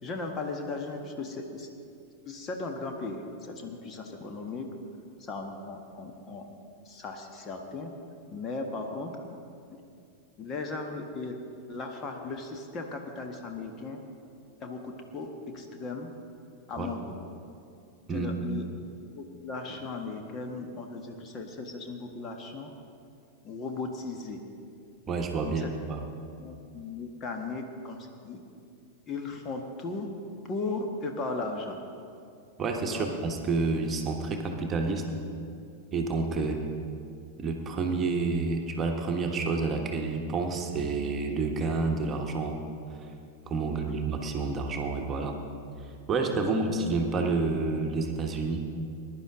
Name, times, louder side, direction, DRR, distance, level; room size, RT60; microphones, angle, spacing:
voice 1, 0.0-1.7 2.2-4.7 5.2-6.5 6.8-7.9 8.3-9.1 10.4-11.4 11.7-14.0 14.6-15.3 15.5-16.1 16.7-17.1 18.1-18.7 19.1-22.7 23.4-24.4 25.4-25.7 26.4-28.4 29.1-30.1 30.5-31.8 32.9-33.1 36.4-36.6 43.6-43.9 46.5-46.6, left 3 dB, 30° left, 3 dB, 1.5 m, -37 dB
voice 2, 25.1-26.0 32.6-35.0 35.9-36.6 37.4-42.6 43.5-45.4 45.8-48.6, right 3 dB, 25° right, 2 dB, 1.4 m, -29 dB
20.5 x 11.0 x 3.8 m, 2.5 s
figure-of-eight pair, 90°, 0 cm